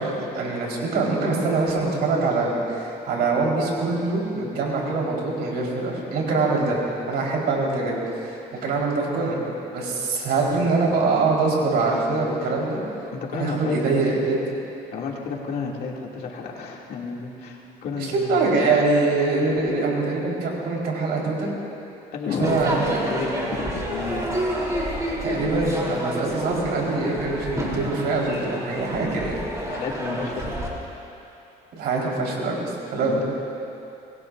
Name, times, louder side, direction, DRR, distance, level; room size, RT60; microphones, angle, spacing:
voice 1, 0.0-6.8 7.1-8.0 8.2-12.8 13.3-14.4 18.0-21.5 22.4-23.0 25.2-29.4 31.7-33.3, right 3 dB, 75° right, -3 dB, 4.5 m, -24 dB
voice 2, 13.1-13.8 14.9-18.4 22.1-22.8 23.1-24.3 29.7-30.5 33.1-33.2, left 4 dB, 65° left, -3 dB, 2.7 m, -31 dB
Crowd / Fireworks, 22.4-30.7, right 1 dB, 20° right, 3.4 m, -29 dB
25.5 x 21.0 x 2.7 m, 2.8 s
cardioid pair, 110°, 17 cm